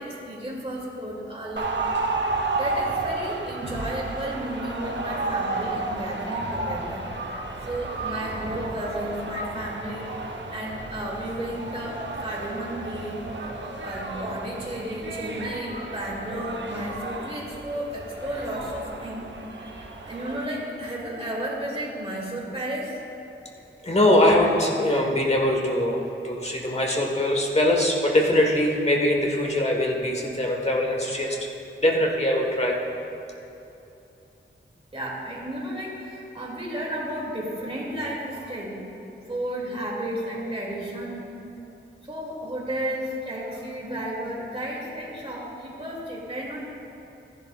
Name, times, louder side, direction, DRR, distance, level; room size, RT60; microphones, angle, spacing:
voice 1, 0.0-1.7 2.0-7.1 7.6-13.5 13.8-19.3 19.7-23.0 34.9-38.8 39.2-41.3 42.0-46.7, right 1 dB, 30° right, -4 dB, 2.4 m, -33 dB
sound 1, 1.6-20.5, right 2 dB, 60° right, 0.9 m, -32 dB
voice 2, 23.8-31.5 31.8-32.8, left 1 dB, 30° left, 0 dB, 1.4 m, -22 dB
14.5 x 11.0 x 2.4 m, 2.9 s
wide cardioid pair, 85°, 21 cm